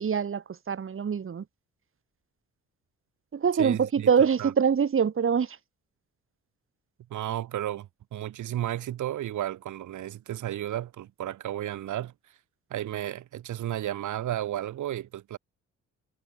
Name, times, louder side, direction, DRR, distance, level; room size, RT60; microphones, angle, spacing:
voice 1, 0.0-1.4 3.3-5.6, right 7 dB, 45° right, 3.6 m, -24 dB
voice 2, 3.6-4.5 7.1-12.4 12.7-15.4, right 12 dB, 75° right, 6.1 m, -33 dB
cardioid pair, 90°, 30 cm